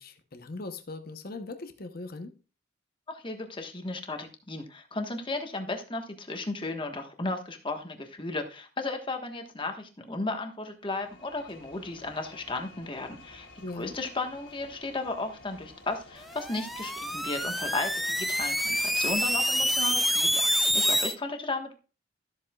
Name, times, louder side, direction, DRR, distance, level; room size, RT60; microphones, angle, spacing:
voice 1, 0.0-2.3 13.6-14.0, left 2 dB, 50° left, 0.9 m, -40 dB
voice 2, 3.1-13.5 13.8-21.8, left 2 dB, 25° left, 1.3 m, -35 dB
sound 1, 10.8-20.6, left 2 dB, 85° left, 2.9 m, -52 dB
sound 2, 16.3-21.1, equal, ahead, 0.4 m, -27 dB
13.0 x 7.6 x 2.4 m
head